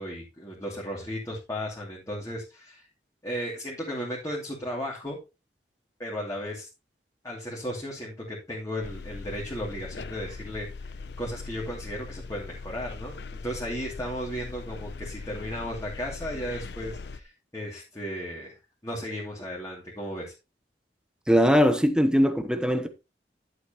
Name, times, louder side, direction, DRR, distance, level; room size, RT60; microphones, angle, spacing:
voice 1, 0.0-2.9 3.2-5.2 6.0-6.7 7.2-10.9 11.2-20.3, equal, 20° left, 2.7 m, -35 dB
sound 1, 8.8-17.2, left 4 dB, 65° left, 0.6 m, -40 dB
voice 2, 21.3-22.9, equal, 5° right, 0.9 m, -21 dB
11.5 x 8.1 x 3.0 m
head